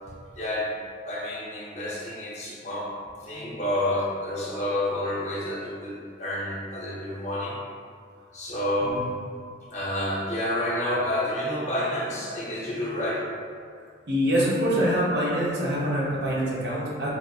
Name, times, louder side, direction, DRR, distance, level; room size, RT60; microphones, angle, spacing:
voice 1, 0.4-0.7 1.1-2.9 3.2-7.6 8.3-9.1 9.7-13.3, left 1 dB, 35° left, -5 dB, 0.5 m, -29 dB
voice 2, 14.1-17.1, equal, 60° right, -6 dB, 0.6 m, -25 dB
2.9 x 2.4 x 2.3 m, 2.1 s
head